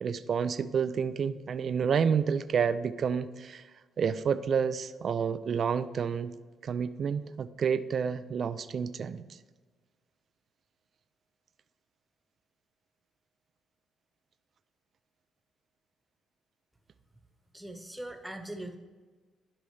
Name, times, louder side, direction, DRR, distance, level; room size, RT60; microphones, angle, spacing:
voice 1, 0.0-3.6 4.0-6.3 6.6-9.3, right 6 dB, 55° right, 13 dB, 0.4 m, -29 dB
voice 2, 17.5-18.8, right 1 dB, 5° right, 5 dB, 1.1 m, -41 dB
11.5 x 5.3 x 3.3 m, 1.4 s
cardioid pair, 90°, 0 cm